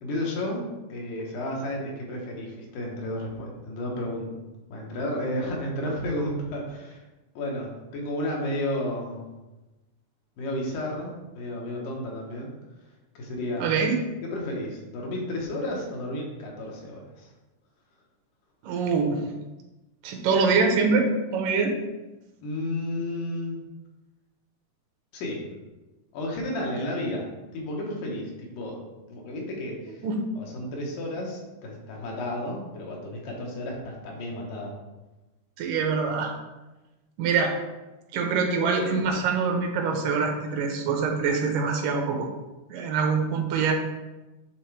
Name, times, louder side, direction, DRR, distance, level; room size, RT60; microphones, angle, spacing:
voice 1, 0.0-4.4 4.7-7.0 7.4-9.3 10.4-12.5 13.1-13.7 14.2-17.3 22.4-23.6 25.1-25.5 26.1-28.8 29.1-30.0 30.4-34.8, left 1 dB, 85° left, -1 dB, 2.8 m, -32 dB
voice 2, 13.6-14.0 18.6-19.2 20.0-21.7 30.0-30.2 35.6-36.3 37.2-37.6 38.1-42.3 42.7-43.7, right 5 dB, 85° right, 2 dB, 2.5 m, -24 dB
9.0 x 3.5 x 3.3 m, 1.1 s
omnidirectional pair, 3.6 m